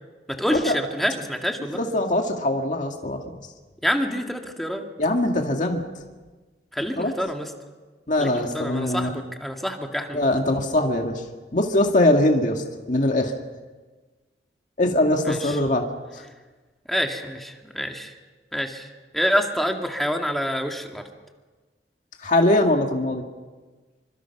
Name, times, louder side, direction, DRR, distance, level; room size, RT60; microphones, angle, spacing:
voice 1, 0.3-1.8 3.8-4.8 6.7-7.5 8.2-10.3 15.2-15.6 16.9-18.1 18.5-18.9 19.1-21.1, equal, ahead, 3 dB, 2.1 m, -27 dB
voice 2, 1.7-3.2 5.0-5.8 7.0-7.1 8.1-9.2 10.1-11.2 11.5-13.3 14.8-15.8 22.2-23.2, left 1 dB, 45° left, 2 dB, 2.1 m, -22 dB
27.0 x 25.0 x 6.0 m, 1.3 s
head